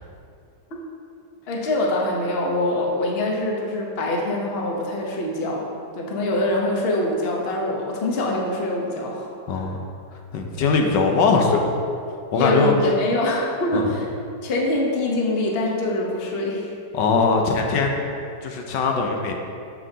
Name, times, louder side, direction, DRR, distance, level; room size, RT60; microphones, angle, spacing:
voice 1, 1.5-5.7 5.9-9.7 12.3-14.1 14.4-16.7, left 1 dB, 40° left, -1 dB, 1.0 m, -24 dB
voice 2, 9.5-9.8 10.3-11.7 12.3-12.7 13.7-13.9 16.9-17.9 18.4-19.4, left 4 dB, 85° left, 2 dB, 1.4 m, -21 dB
8.8 x 6.9 x 2.8 m, 2.5 s
omnidirectional pair, 1.9 m